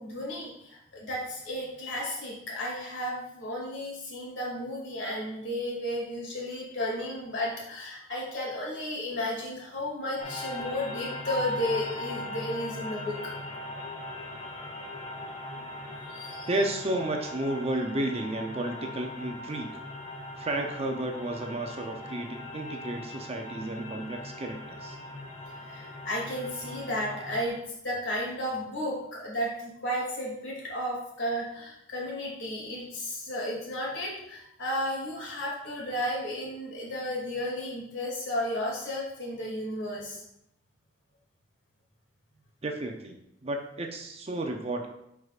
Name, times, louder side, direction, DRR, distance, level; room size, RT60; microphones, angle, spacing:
voice 1, 0.0-13.3 15.5-15.7 16.0-16.5 25.7-27.6 27.8-40.2, left 1 dB, 70° left, -3 dB, 2.5 m, -33 dB
sound 1, 10.2-27.5, left 1 dB, 35° left, 1.7 m, -39 dB
voice 2, 16.5-19.7 20.4-25.0 42.6-43.2 43.4-44.9, right 1 dB, 35° right, 3 dB, 0.6 m, -32 dB
9.2 x 4.8 x 2.4 m, 0.78 s
head